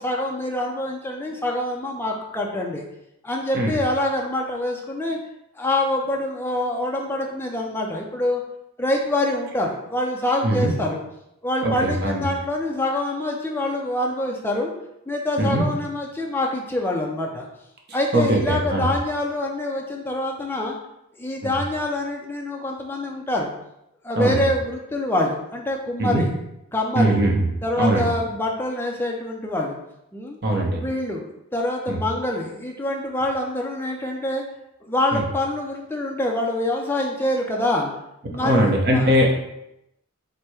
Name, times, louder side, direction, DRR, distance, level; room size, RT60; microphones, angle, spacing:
voice 1, 0.0-2.8 3.2-5.2 5.6-8.4 8.8-11.0 11.4-14.7 15.1-17.5 17.9-20.8 21.2-23.5 24.0-26.3 26.7-27.2 27.6-29.8 30.1-30.4 30.7-31.2 31.5-34.4 34.8-37.9 38.3-39.1, left 1 dB, 10° left, 0 dB, 0.5 m, -25 dB
voice 2, 11.6-12.3 15.4-15.7 18.1-18.9 21.4-21.6 24.2-24.4 26.0-26.3 27.0-27.5 27.8-28.1 30.4-30.8 31.9-32.0 35.1-35.2 38.4-39.3, right 1 dB, 45° right, 0 dB, 0.8 m, -20 dB
4.4 x 2.2 x 4.7 m, 0.84 s
head